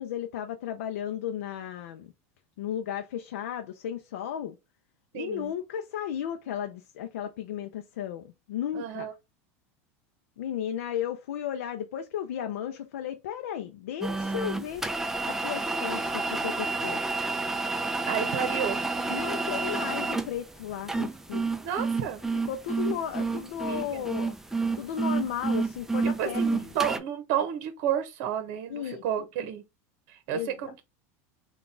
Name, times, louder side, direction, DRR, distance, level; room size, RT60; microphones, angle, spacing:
voice 1, 0.0-2.1 2.6-4.6 5.1-9.1 10.4-14.8 15.2-17.0 19.1-21.5 22.5-24.3 24.8-26.7 28.7-29.0 30.3-30.5, left 9 dB, 90° left, 0.5 m, -34 dB
voice 2, 5.1-5.5 8.7-9.1 18.1-18.8 21.6-22.2 23.6-24.1 26.0-29.6 30.1-30.8, right 9 dB, 65° right, 0.9 m, -31 dB
sound 1, 14.0-27.0, right 3 dB, 5° right, 0.4 m, -29 dB
3.9 x 2.4 x 3.7 m
supercardioid pair, 115°, 8 cm